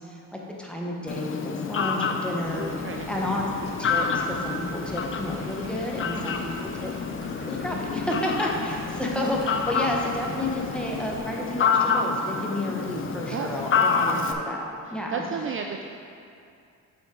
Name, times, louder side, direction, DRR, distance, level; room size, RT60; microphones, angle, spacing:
voice 1, 0.0-6.9 7.4-15.2, left 1 dB, 5° left, -2 dB, 1.1 m, -31 dB
Fowl, 1.1-14.3, left 5 dB, 40° left, 0.6 m, -28 dB
sound 1, 2.4-11.2, right 3 dB, 65° right, 1.0 m, -47 dB
voice 2, 14.8-15.9, right 6 dB, 40° right, 3 dB, 0.4 m, -34 dB
7.8 x 5.8 x 3.8 m, 2.5 s
cardioid pair, 95°, 33 cm